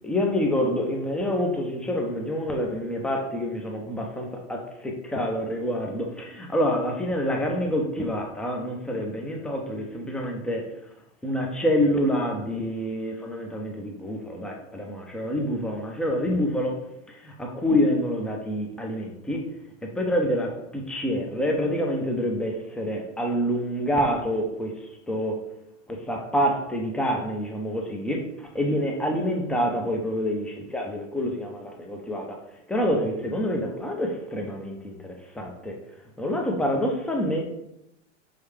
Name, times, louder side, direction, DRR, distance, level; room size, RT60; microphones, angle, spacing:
voice 1, 0.0-10.7 11.2-16.8 17.1-19.5 20.0-24.8 25.1-25.4 25.9-28.3 28.5-32.4 32.7-35.8 36.2-37.4, equal, 5° left, 1 dB, 0.3 m, -27 dB
4.5 x 3.3 x 3.2 m, 0.84 s
hypercardioid pair, 105°, 37 cm